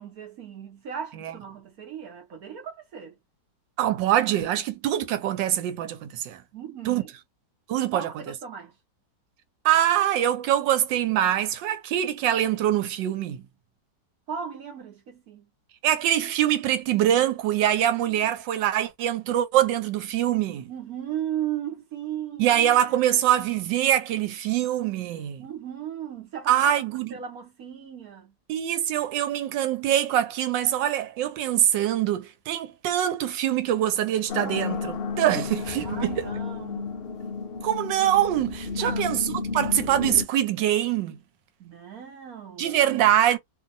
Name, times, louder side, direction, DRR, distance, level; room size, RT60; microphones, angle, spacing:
voice 1, 0.0-3.2 6.5-7.1 7.9-8.7 14.3-15.5 18.1-18.3 20.7-22.6 25.4-26.6 27.1-28.3 35.8-37.0 38.7-39.4 41.6-42.8, right 9 dB, 60° right, 1.2 m, -36 dB
voice 2, 3.8-6.4 6.9-7.0 7.7-8.1 9.6-13.4 15.8-20.7 22.4-25.4 26.5-27.2 28.5-36.3 37.6-41.2 42.6-43.4, right 11 dB, 90° right, 1.3 m, -24 dB
sound 1, 34.3-40.2, left 5 dB, 80° left, 0.5 m, -32 dB
2.7 x 2.7 x 2.6 m
omnidirectional pair, 1.9 m